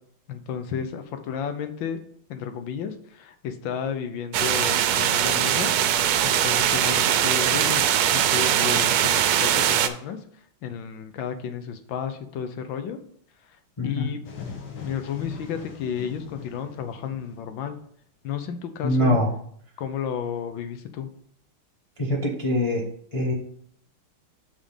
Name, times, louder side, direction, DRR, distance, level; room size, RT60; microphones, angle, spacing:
voice 1, 0.3-2.0 2.3-5.7 6.2-7.8 8.1-10.2 10.6-13.0 13.8-14.2 14.8-17.8 18.2-19.2 19.8-21.1, left 7 dB, 70° left, 8 dB, 1.4 m, -32 dB
sound 1, 4.3-9.9, right 10 dB, 85° right, 1.5 m, -21 dB
voice 2, 13.8-14.1 18.8-19.3 22.0-22.8 23.1-23.3, left 1 dB, 35° left, -2 dB, 0.5 m, -23 dB
sound 2, 14.2-17.8, left 6 dB, 90° left, 2.0 m, -40 dB
5.9 x 4.3 x 5.5 m, 0.63 s
omnidirectional pair, 2.3 m